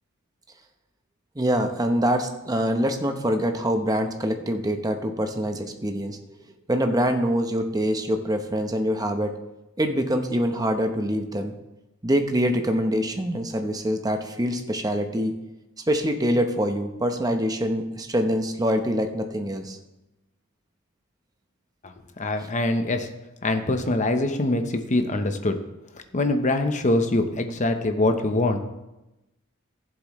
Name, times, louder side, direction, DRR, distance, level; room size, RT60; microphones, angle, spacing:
voice 1, 1.4-6.2 6.7-9.3 9.8-11.5 12.0-15.3 15.9-19.8, equal, 15° right, 5 dB, 0.9 m, -24 dB
voice 2, 21.8-23.1 23.4-25.6 26.1-28.6, left 2 dB, 35° left, 6 dB, 0.9 m, -24 dB
15.0 x 7.7 x 3.1 m, 0.98 s
head